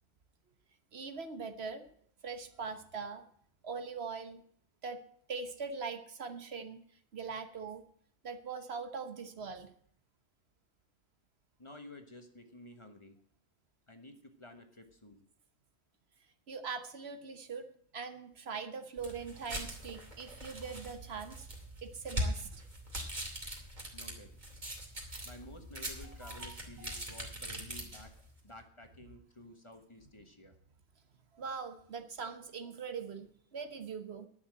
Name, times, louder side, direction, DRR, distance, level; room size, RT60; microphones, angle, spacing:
voice 1, 0.9-1.8 2.2-3.2 3.6-4.4 4.8-5.0 5.3-6.8 7.1-7.8 8.2-9.7 16.5-21.5 21.8-22.6 26.0-26.9 31.3-34.3, right 5 dB, 65° right, 9 dB, 1.4 m, -42 dB
voice 2, 11.6-13.2 13.9-15.2 23.9-24.3 25.2-28.1 28.4-30.5, left 1 dB, 25° left, 6 dB, 1.4 m, -52 dB
sound 1, 19.0-28.3, equal, 40° right, 2.9 m, -41 dB
11.0 x 7.1 x 8.7 m, 0.62 s
omnidirectional pair, 1.1 m